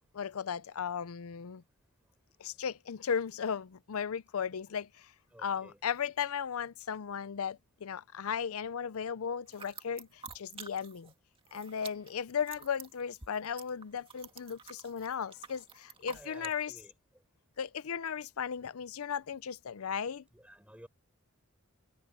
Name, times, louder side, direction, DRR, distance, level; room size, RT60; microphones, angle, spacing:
voice 1, 0.1-1.6 2.4-5.1 5.4-11.1 11.5-16.7 17.6-20.2, left 7 dB, 90° left, 0.5 m, -36 dB
voice 2, 5.3-5.8 15.0-15.3 16.0-17.2 20.3-20.9, right 1 dB, 5° right, 5.1 m, -55 dB
sound 1, 9.5-11.1 11.4-16.6, right 5 dB, 25° right, 2.0 m, -49 dB
head